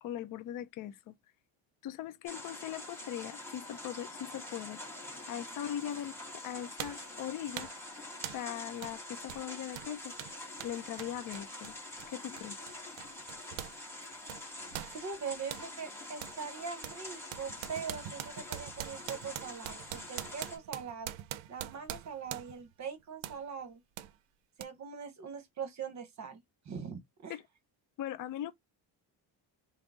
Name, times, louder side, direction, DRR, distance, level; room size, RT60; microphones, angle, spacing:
voice 1, 0.0-1.2 1.8-4.8 5.3-7.7 8.3-10.1 10.6-11.7 12.1-12.6 27.3-27.4 28.0-28.5, left 11 dB, 45° left, 0.4 m, -40 dB
sound 1, 2.3-20.6, left 2 dB, 5° left, 1.4 m, -46 dB
sound 2, 5.9-6.0 6.8-7.1 7.6-7.8 8.2-8.5 8.8-9.0 9.3-13.8 14.0-15.7 16.2-16.4 16.8-22.7 23.2-23.4 24.0-24.1 24.6-24.7, right 12 dB, 80° right, 0.5 m, -43 dB
voice 2, 14.9-21.1 21.5-23.8 24.6-27.4, right 6 dB, 35° right, 0.9 m, -42 dB
3.6 x 2.0 x 3.5 m
cardioid pair, 160°, 46 cm